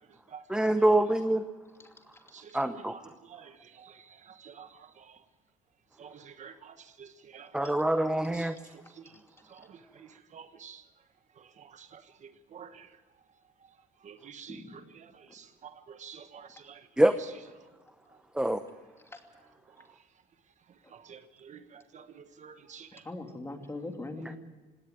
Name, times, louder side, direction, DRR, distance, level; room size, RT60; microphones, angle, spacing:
voice 1, 0.5-1.5 2.5-3.0 7.5-8.6 17.0-17.2 18.3-18.6, right 1 dB, 5° right, 0.8 m, -25 dB
voice 2, 2.3-3.0 3.3-5.2 6.0-7.7 8.3-8.5 9.0-9.1 9.5-10.8 11.6-12.9 14.0-16.8 20.9-23.0, right 7 dB, 45° right, 1.2 m, -50 dB
voice 3, 23.0-24.4, left 2 dB, 15° left, 2.7 m, -40 dB
19.0 x 17.5 x 9.5 m
cardioid pair, 110°, 17 cm